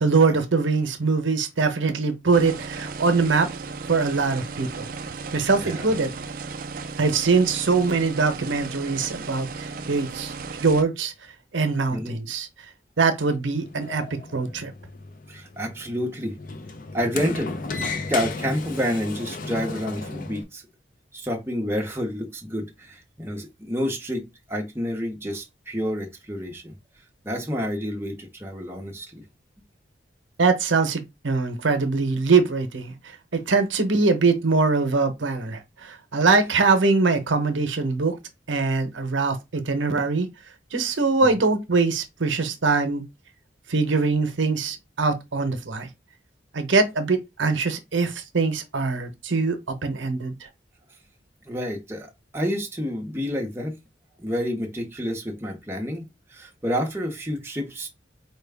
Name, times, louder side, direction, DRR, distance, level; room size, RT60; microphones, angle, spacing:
voice 1, 0.0-3.5 3.9-4.9 5.3-6.1 7.0-10.3 10.6-11.1 11.5-12.5 13.0-14.7 30.4-38.2 38.5-40.3 40.7-43.0 43.7-45.9 46.5-50.5, right 4 dB, 85° right, 0.8 m, -23 dB
sound 1, 2.3-10.8, right 4 dB, 45° right, 0.4 m, -35 dB
voice 2, 5.6-5.9 11.9-12.2 15.3-16.4 16.9-17.5 18.1-20.6 21.1-24.2 24.5-26.7 27.2-29.2 41.2-41.3 51.5-52.1 52.3-53.8 54.2-56.0 56.3-57.9, equal, 15° right, 0.7 m, -29 dB
Sliding door, 13.4-20.4, left 3 dB, 45° left, 0.5 m, -34 dB
4.5 x 2.2 x 3.4 m
head